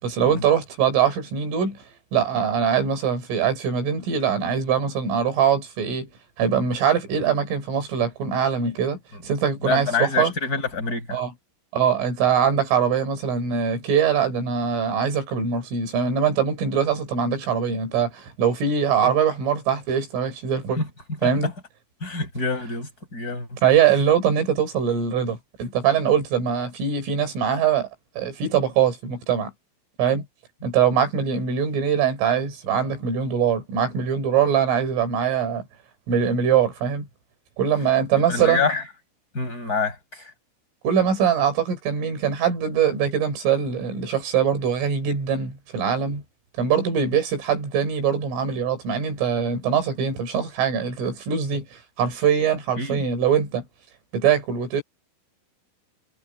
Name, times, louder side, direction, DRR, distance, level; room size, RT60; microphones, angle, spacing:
voice 1, 0.0-1.8 2.1-6.1 6.4-10.3 11.1-11.3 11.7-20.8 21.2-21.5 23.6-27.9 28.2-29.5 30.0-30.3 30.6-35.7 36.1-37.1 37.6-38.7 40.8-46.2 46.6-53.6 54.1-54.8, right 7 dB, 85° right, 7.9 m, -22 dB
voice 2, 9.6-11.2 20.8-20.9 21.2-21.3 22.0-23.5 38.3-38.8 39.3-40.3 52.8-53.0, left 4 dB, 20° left, 7.7 m, -26 dB
omnidirectional pair, 5.6 m